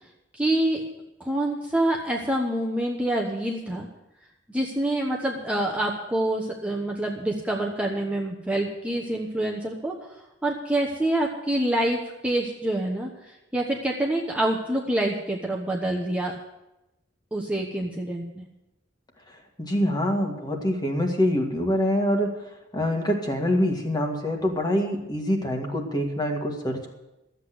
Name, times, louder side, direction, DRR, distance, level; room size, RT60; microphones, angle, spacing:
voice 1, 0.3-0.8 1.2-3.9 4.5-9.9 10.4-13.1 13.5-16.3 17.3-18.4, right 1 dB, 5° right, -1 dB, 1.1 m, -26 dB
voice 2, 19.6-22.4 22.7-26.9, equal, 25° left, 2 dB, 1.9 m, -25 dB
13.0 x 8.2 x 7.8 m, 0.94 s
head